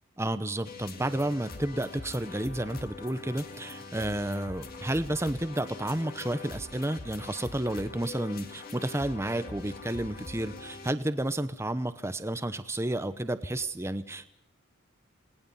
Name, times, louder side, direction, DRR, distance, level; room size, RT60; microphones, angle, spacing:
voice 1, 0.2-14.3, right 1 dB, 10° right, 11 dB, 0.8 m, -31 dB
sound 1, 0.6-10.9, left 3 dB, 45° left, 1.9 m, -43 dB
27.0 x 18.5 x 5.6 m, 0.80 s
head